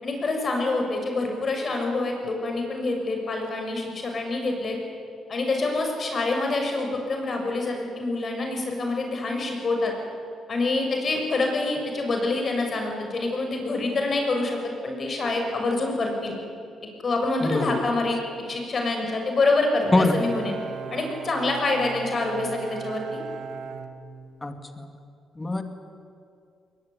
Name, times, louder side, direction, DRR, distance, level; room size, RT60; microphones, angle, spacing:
voice 1, 0.0-4.8 5.3-9.9 10.5-16.3 17.0-18.2 18.5-20.6 20.9-23.2, left 2 dB, 40° left, 2 dB, 6.8 m, -26 dB
voice 2, 17.4-17.9 19.9-20.2 24.4-24.9 25.4-25.6, left 2 dB, 20° left, 7 dB, 2.5 m, -24 dB
Bowed string instrument, 19.8-24.7, right 6 dB, 75° right, 2.0 m, -38 dB
21.5 x 20.0 x 9.9 m, 2.4 s
cardioid pair, 90°, 0 cm